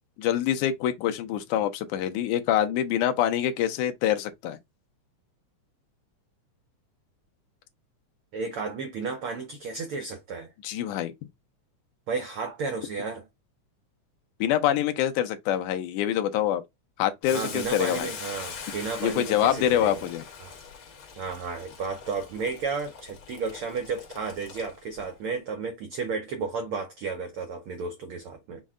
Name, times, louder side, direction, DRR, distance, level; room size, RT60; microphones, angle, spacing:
voice 1, 0.2-4.6 10.6-11.1 14.4-16.6 17.0-18.1 19.0-20.2, left 11 dB, 80° left, 2.1 m, -25 dB
voice 2, 8.3-10.5 12.1-13.3 17.3-20.0 20.4-20.5 21.2-28.6, right 4 dB, 90° right, 1.2 m, -33 dB
Boiling, 17.2-25.0, left 6 dB, 55° left, 1.7 m, -42 dB
6.2 x 2.1 x 3.6 m
omnidirectional pair, 3.5 m